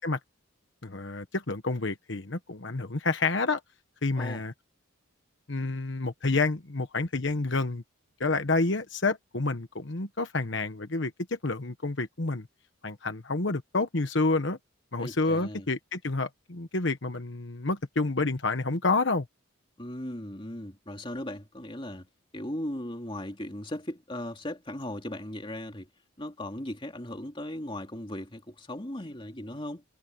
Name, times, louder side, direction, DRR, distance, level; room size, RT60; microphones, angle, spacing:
voice 1, 0.8-3.6 4.0-4.5 5.5-7.8 8.2-12.5 12.8-14.6 14.9-19.3, left 3 dB, 60° left, 1.2 m, -29 dB
voice 2, 15.0-15.7 19.8-22.1 22.3-25.9 26.2-29.8, left 1 dB, 25° left, 2.8 m, -37 dB
head